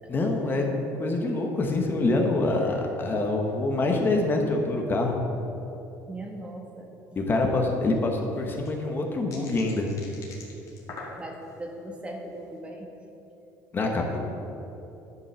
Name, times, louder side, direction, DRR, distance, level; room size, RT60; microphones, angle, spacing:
voice 1, 0.1-5.2 7.3-9.9 13.7-14.2, left 2 dB, 30° left, 2 dB, 1.1 m, -25 dB
voice 2, 6.1-6.9 7.3-7.6 11.2-12.9, right 1 dB, 15° right, 1 dB, 1.3 m, -40 dB
sound 1, 7.5-7.6 7.8-7.9 8.3-11.6 12.1-12.4, left 3 dB, 45° left, 2.3 m, -44 dB
11.0 x 5.5 x 6.7 m, 3.0 s
cardioid pair, 130°, 7 cm